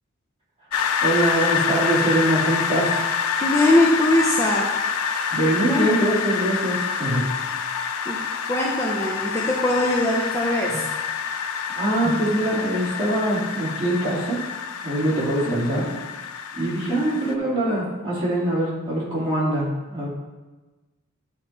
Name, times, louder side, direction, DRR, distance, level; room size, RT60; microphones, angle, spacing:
sound 1, 0.7-17.3, left 6 dB, 75° left, 0.5 m, -27 dB
voice 1, 1.0-3.0 5.3-7.2 11.7-14.4 14.8-15.8 16.5-20.1, right 1 dB, 25° right, -8 dB, 2.8 m, -23 dB
voice 2, 3.4-4.6 5.7-5.9 8.1-8.2 8.5-10.8 12.1-12.2 15.5-15.8 16.9-17.3, left 1 dB, 15° left, -3 dB, 0.7 m, -22 dB
11.0 x 3.8 x 4.4 m, 1.2 s
head